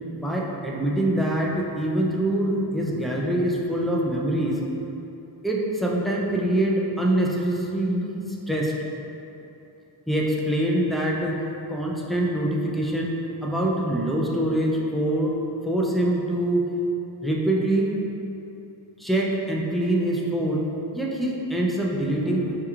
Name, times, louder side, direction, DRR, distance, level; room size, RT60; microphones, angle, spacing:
voice 1, 0.1-4.6 5.4-8.7 10.1-11.3 11.7-13.1 13.4-15.3 15.6-16.6 17.2-17.9 19.0-20.6 20.9-22.6, right 1 dB, ahead, -4 dB, 0.4 m, -24 dB
4.4 x 3.0 x 2.4 m, 2.8 s
cardioid pair, 75°, 48 cm